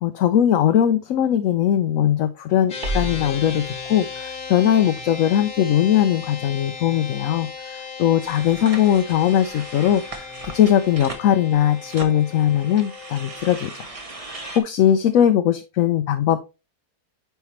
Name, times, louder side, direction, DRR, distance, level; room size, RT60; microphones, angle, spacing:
voice 1, 0.0-13.9 14.3-16.4, left 10 dB, 70° left, 8 dB, 0.9 m, -20 dB
sound 1, 2.7-13.5, left 5 dB, 30° left, 1.2 m, -36 dB
sound 2, 2.8-7.7, right 1 dB, 80° right, 1.8 m, -36 dB
sound 3, 8.2-14.6, right 2 dB, 25° right, 1.0 m, -39 dB
9.3 x 4.5 x 3.0 m, 0.27 s
omnidirectional pair, 1.7 m